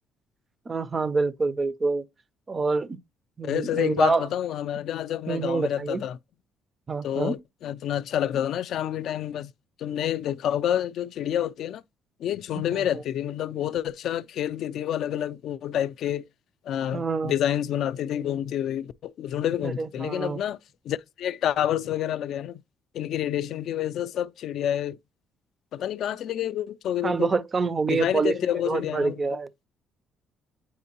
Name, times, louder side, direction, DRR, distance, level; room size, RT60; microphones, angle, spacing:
voice 1, 0.7-2.0 2.5-3.0 3.4-4.3 5.3-6.0 6.9-7.3 12.8-12.9 16.9-17.3 19.6-20.4 27.0-29.5, right 4 dB, 25° right, 0.4 m, -26 dB
voice 2, 3.4-6.2 7.0-9.5 9.8-11.8 12.2-16.3 16.7-20.6 20.9-22.6 22.9-25.0 25.7-27.3 27.9-29.4, left 10 dB, 65° left, 0.3 m, -28 dB
8.4 x 4.4 x 2.9 m
cardioid pair, 125°, 0 cm